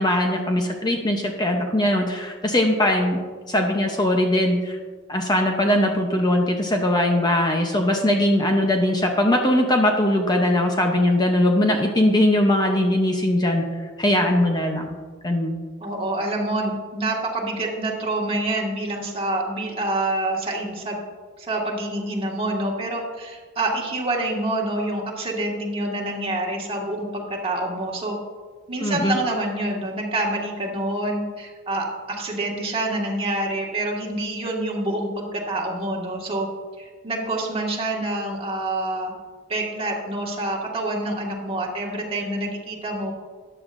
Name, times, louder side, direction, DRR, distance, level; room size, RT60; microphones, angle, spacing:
voice 1, 0.0-4.8 5.1-13.6 14.0-14.9 15.2-15.6 28.8-29.2, left 1 dB, 20° left, 2 dB, 0.8 m, -20 dB
voice 2, 15.8-21.0 21.4-28.2 28.7-36.5 36.8-39.1 39.5-43.1, right 2 dB, 25° right, -2 dB, 1.8 m, -27 dB
13.5 x 10.0 x 2.6 m, 1.5 s
head